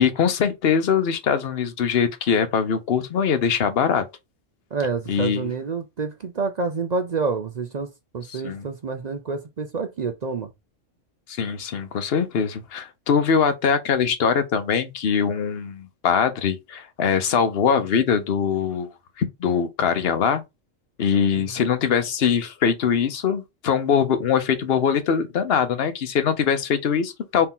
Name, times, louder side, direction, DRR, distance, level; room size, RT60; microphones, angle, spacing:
voice 1, 0.0-4.1 5.1-5.5 8.3-8.7 11.3-18.9 19.2-20.4 21.0-27.5, left 7 dB, 55° left, 0.9 m, -22 dB
voice 2, 4.7-7.9 8.1-10.5, right 4 dB, 50° right, 0.5 m, -28 dB
4.2 x 2.8 x 3.7 m
omnidirectional pair, 1.3 m